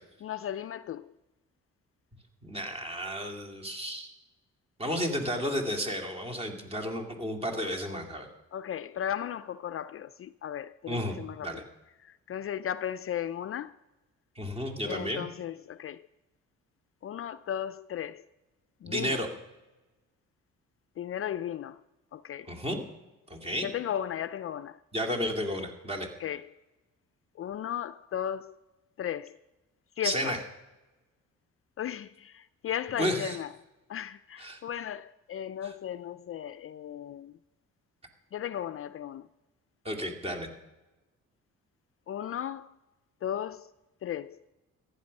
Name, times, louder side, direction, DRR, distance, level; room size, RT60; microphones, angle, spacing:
voice 1, 0.2-1.1 8.5-11.6 12.0-13.7 14.9-16.0 17.0-18.2 18.8-19.2 21.0-21.8 22.1-22.5 23.6-24.8 26.2-26.5 27.4-28.6 29.0-29.4 30.0-30.4 31.8-33.5 33.9-37.3 38.3-39.3 42.1-42.7 43.2-43.7 44.0-44.4, left 10 dB, 50° left, 0.4 m, -35 dB
voice 2, 2.4-4.1 4.8-8.3 10.9-11.2 11.4-11.6 14.4-15.2 18.9-19.3 22.5-22.8 23.3-23.7 24.9-26.1 30.0-30.4 33.0-33.4 34.4-34.6 35.6-35.7 39.8-40.5, equal, 20° right, 2.6 m, -32 dB
15.0 x 10.5 x 5.4 m
cardioid pair, 90°, 30 cm